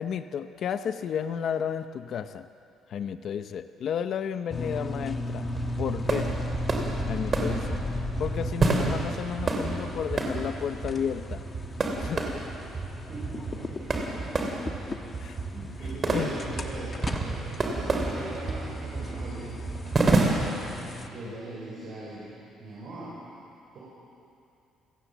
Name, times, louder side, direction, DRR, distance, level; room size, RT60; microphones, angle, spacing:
voice 1, 0.0-2.5 2.9-5.5 5.8-6.3 7.1-7.8 8.2-11.4 12.0-12.2 15.2-15.4 16.1-16.4 21.2-21.3, left 8 dB, 45° left, 10 dB, 0.7 m, -32 dB
sound 1, 4.5-21.1, left 2 dB, 20° left, 1.2 m, -37 dB
sound 2, 5.4-20.8, right 3 dB, 25° right, 2.7 m, -30 dB
voice 2, 12.9-14.8 15.5-19.7 21.1-22.3 22.6-23.1 23.7-23.8, right 2 dB, 45° right, -7 dB, 5.8 m, -41 dB
29.5 x 18.0 x 7.2 m, 2.6 s
cardioid pair, 180°, 0 cm